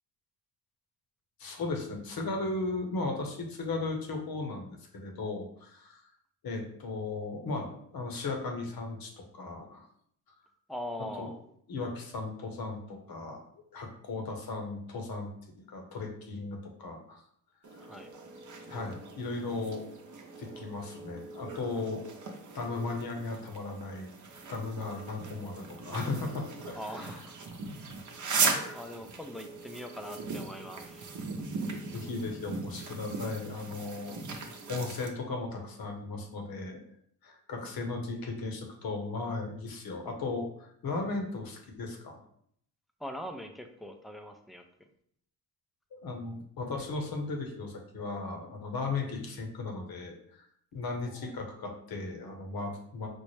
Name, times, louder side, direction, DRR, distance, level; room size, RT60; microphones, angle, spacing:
voice 1, 1.4-6.0 6.4-9.9 11.0-11.3 11.7-13.4 13.7-15.3 15.7-17.2 18.7-19.9 20.4-24.1 24.5-27.2 31.9-36.8 37.2-42.2 45.9-50.4 50.7-53.1, left 3 dB, 55° left, 3 dB, 1.0 m, -36 dB
voice 2, 10.7-11.4 17.8-18.1 26.7-27.4 27.8-27.9 28.7-31.1 43.0-44.6 51.1-51.3, left 1 dB, ahead, 5 dB, 0.4 m, -42 dB
sound 1, 17.6-35.1, right 4 dB, 45° right, 0.8 m, -38 dB
4.5 x 2.0 x 3.1 m, 0.66 s
supercardioid pair, 55°, 42 cm